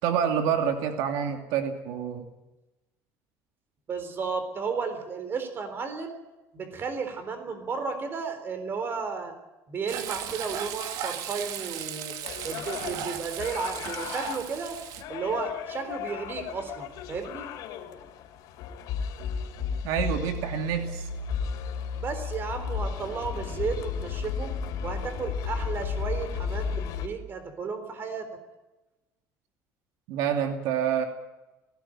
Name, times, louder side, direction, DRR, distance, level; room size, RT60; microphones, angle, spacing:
voice 1, 0.0-2.3 19.8-21.1 30.1-31.1, right 8 dB, 85° right, 5 dB, 2.6 m, -27 dB
voice 2, 3.9-6.1 6.5-9.3 9.7-12.2 12.4-14.8 15.1-17.5 21.9-24.5 24.8-28.3, right 5 dB, 35° right, 9 dB, 3.8 m, -33 dB
Frying (food), 9.9-15.0, right 9 dB, 65° right, 2.1 m, -36 dB
sound 1, 12.2-27.1, left 6 dB, 70° left, 3.0 m, -34 dB
18.5 x 16.5 x 8.8 m, 1.1 s
cardioid pair, 150°, 7 cm